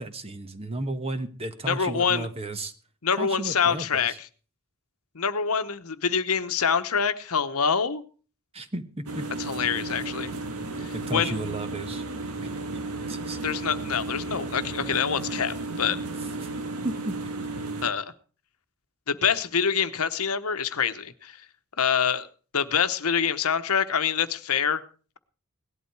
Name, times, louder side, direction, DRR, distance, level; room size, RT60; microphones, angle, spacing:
voice 1, 0.0-2.7 3.2-4.1 8.5-9.2 10.9-12.0 12.4-12.5 13.1-13.4 16.8-17.2, right 2 dB, 25° right, 9 dB, 1.2 m, -33 dB
voice 2, 1.7-2.3 3.0-4.3 5.1-8.0 9.4-10.3 10.8-11.3 13.4-16.0 17.8-18.1 19.1-21.4 21.8-22.3 22.5-24.8, left 7 dB, 80° left, 10 dB, 1.1 m, -26 dB
sound 1, 9.1-17.9, right 2 dB, 85° right, 1.6 m, -33 dB
18.0 x 11.5 x 4.7 m, 0.40 s
head